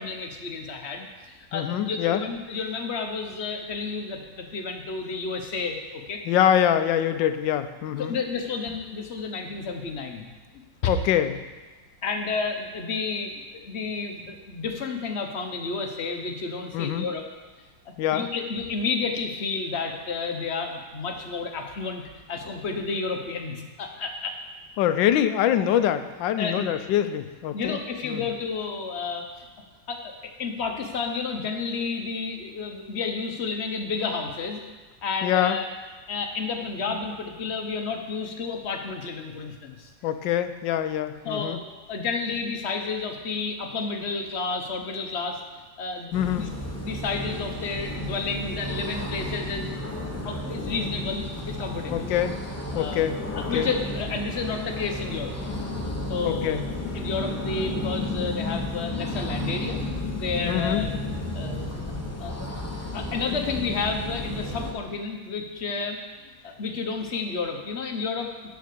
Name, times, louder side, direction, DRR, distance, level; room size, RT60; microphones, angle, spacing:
voice 1, 0.0-6.2 8.0-10.3 12.0-17.2 17.9-22.0 22.3-24.4 26.4-26.7 27.5-29.5 29.9-34.6 35.0-35.7 36.1-39.9 41.2-41.6 41.9-45.4 45.8-46.5 46.8-50.0 50.2-52.1 52.7-55.3 56.1-56.6 56.9-59.8 60.2-61.0 61.3-61.8 62.2-62.5 62.9-68.3, left 4 dB, 45° left, 4 dB, 1.0 m, -31 dB
voice 2, 1.5-2.2 6.3-8.1 10.9-11.4 16.7-17.1 18.0-18.3 24.8-27.8 28.0-28.3 35.2-35.6 40.0-41.6 46.1-46.5 51.9-52.3 52.7-53.7 56.2-56.6 60.5-60.9, left 10 dB, 80° left, 10 dB, 1.3 m, -24 dB
sound 1, 46.1-64.7, left 1 dB, 15° left, 0.5 m, -32 dB
11.5 x 4.7 x 6.8 m, 1.3 s
omnidirectional pair, 2.0 m